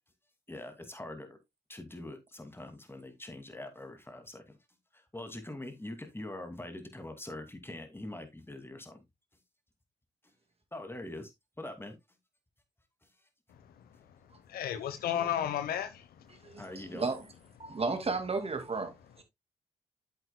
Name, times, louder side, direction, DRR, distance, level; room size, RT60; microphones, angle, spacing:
voice 1, 0.5-1.4 1.7-4.6 4.9-9.0 10.7-11.3 11.6-12.0 16.6-17.1, left 1 dB, 15° left, 2.4 m, -43 dB
voice 2, 14.5-16.0, left 10 dB, 75° left, 0.9 m, -32 dB
voice 3, 16.3-17.2 17.6-19.2, right 4 dB, 40° right, 2.2 m, -34 dB
8.6 x 7.9 x 2.2 m
hypercardioid pair, 45°, 16 cm